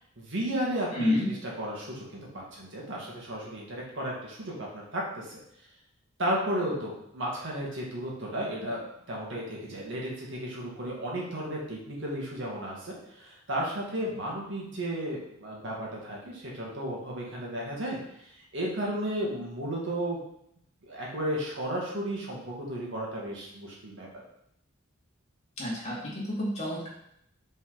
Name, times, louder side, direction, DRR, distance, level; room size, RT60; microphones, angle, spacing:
voice 1, 0.2-5.4 6.2-20.2 20.9-24.1, right 1 dB, 65° right, -3 dB, 1.8 m, -34 dB
voice 2, 0.9-1.2 25.6-26.9, left 1 dB, 35° left, -6 dB, 2.2 m, -29 dB
5.4 x 4.9 x 3.9 m, 0.74 s
head